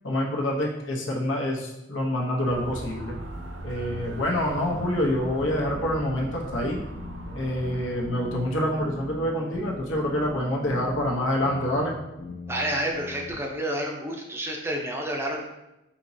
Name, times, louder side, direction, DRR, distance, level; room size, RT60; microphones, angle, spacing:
voice 1, 0.0-3.2 3.6-6.8 7.3-12.0, left 1 dB, 80° left, -2 dB, 0.8 m, -27 dB
Motor vehicle (road) / Siren, 2.5-8.1, right 1 dB, 75° right, 0.5 m, -39 dB
sound 1, 3.3-13.4, left 2 dB, 50° left, 0.6 m, -41 dB
voice 2, 12.5-15.4, right 1 dB, 15° right, 0 dB, 0.5 m, -29 dB
5.1 x 3.0 x 2.6 m, 0.93 s
head